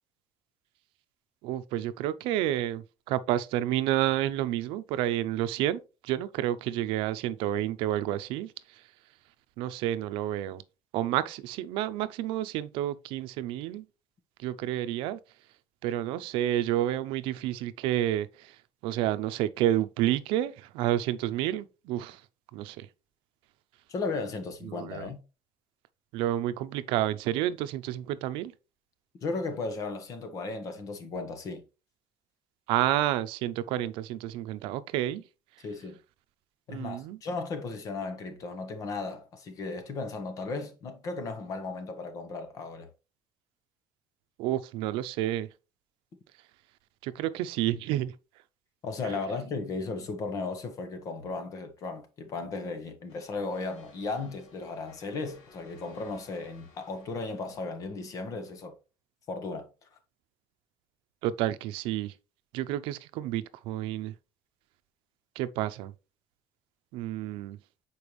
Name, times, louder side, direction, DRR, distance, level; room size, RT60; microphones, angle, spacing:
voice 1, 1.4-8.8 9.6-10.6 10.9-13.9 14.4-15.2 15.8-18.6 18.8-22.2 22.5-22.9 24.6-25.1 26.1-28.5 32.7-35.2 36.7-37.2 44.4-45.5 47.0-48.1 49.0-49.1 61.2-62.1 62.5-64.1 65.4-65.9 66.9-67.6, right 13 dB, 90° right, 0.6 m, -30 dB
voice 2, 23.9-25.2 29.2-31.6 35.6-36.0 36.7-42.9 48.8-58.8 59.3-59.7, left 3 dB, 40° left, 1.2 m, -35 dB
sound 1, 53.1-58.6, left 4 dB, 75° left, 2.9 m, -58 dB
7.0 x 4.5 x 3.1 m
cardioid pair, 165°, 9 cm